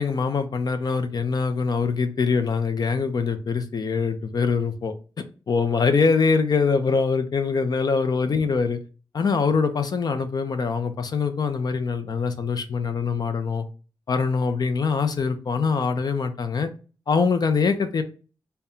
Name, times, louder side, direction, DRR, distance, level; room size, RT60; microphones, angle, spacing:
voice 1, 0.0-4.9 5.5-8.8 9.1-13.7 14.1-16.7 17.1-18.0, left 5 dB, 55° left, 8 dB, 0.6 m, -23 dB
4.1 x 2.2 x 3.7 m, 0.35 s
wide cardioid pair, 115°, 8 cm